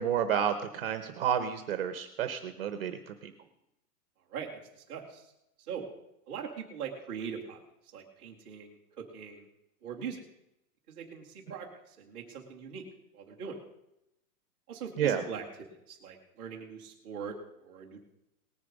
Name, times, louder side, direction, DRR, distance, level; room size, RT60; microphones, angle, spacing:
voice 1, 0.0-3.3 15.0-15.2, right 8 dB, 40° right, 9 dB, 0.8 m, -30 dB
voice 2, 4.9-5.3 5.6-5.9 6.3-7.6 7.9-9.4 9.8-10.2 10.9-12.8 13.1-13.6 14.7-15.4 15.9-18.1, right 7 dB, 5° right, -5 dB, 0.5 m, -41 dB
19.0 x 6.8 x 5.3 m, 0.84 s
hypercardioid pair, 170°, 47 cm